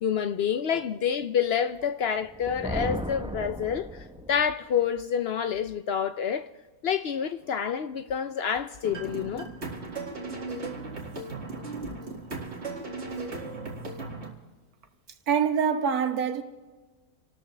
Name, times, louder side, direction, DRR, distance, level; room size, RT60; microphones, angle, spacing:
voice 1, 0.0-6.5 6.8-9.5, left 8 dB, 75° left, 0.5 m, -28 dB
Thunder, 2.2-4.5, right 1 dB, 10° right, 0.3 m, -35 dB
sound 1, 8.8-14.3, right 3 dB, 40° right, 2.4 m, -36 dB
voice 2, 15.3-16.4, right 7 dB, 65° right, 1.6 m, -25 dB
27.5 x 13.0 x 3.3 m
omnidirectional pair, 1.7 m